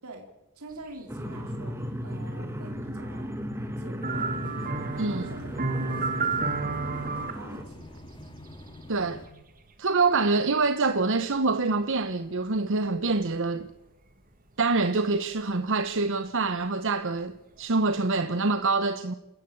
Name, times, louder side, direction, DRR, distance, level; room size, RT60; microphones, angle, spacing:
voice 1, 0.6-3.3 3.8-4.3 4.9-6.8 7.2-8.0, right 2 dB, 80° right, 3.6 m, -46 dB
sound 1, 1.1-7.6, equal, 10° right, 2.4 m, -36 dB
sound 2, 4.0-9.2, left 1 dB, 25° left, 2.3 m, -46 dB
sound 3, 4.0-7.3 10.1-10.2, right 4 dB, 40° right, 2.1 m, -30 dB
voice 2, 5.0-5.3 8.9-9.2 9.8-13.7 14.6-19.1, right 3 dB, 60° right, 1.0 m, -25 dB
28.5 x 14.5 x 8.6 m
head